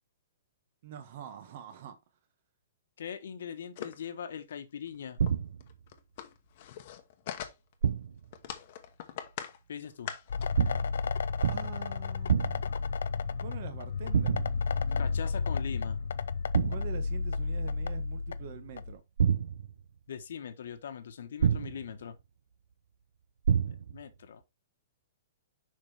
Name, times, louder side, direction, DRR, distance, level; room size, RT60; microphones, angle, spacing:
voice 1, 0.8-2.0 11.5-12.8 13.3-14.4 14.9-15.0 16.7-19.0, right 9 dB, 45° right, 1.3 m, -45 dB
voice 2, 3.0-5.2 9.7-10.1 14.9-16.0 20.1-22.2 23.9-24.4, left 8 dB, 70° left, 1.3 m, -41 dB
sound 1, 3.8-4.1 4.5-4.6 4.9-5.0 5.3-5.4 5.6-7.9 8.3-9.6 9.8-10.5, left 10 dB, 40° left, 1.1 m, -41 dB
sound 2, 5.2-5.7 7.8-8.3 10.5-11.0 11.4-11.9 12.3-12.8 14.1-14.7 16.5-17.0 19.2-19.8 21.4-22.0 23.4-24.0, right 7 dB, 80° right, 0.7 m, -28 dB
sound 3, 10.3-18.9, left 4 dB, 85° left, 0.5 m, -32 dB
6.6 x 5.3 x 3.5 m
hypercardioid pair, 170°, 0 cm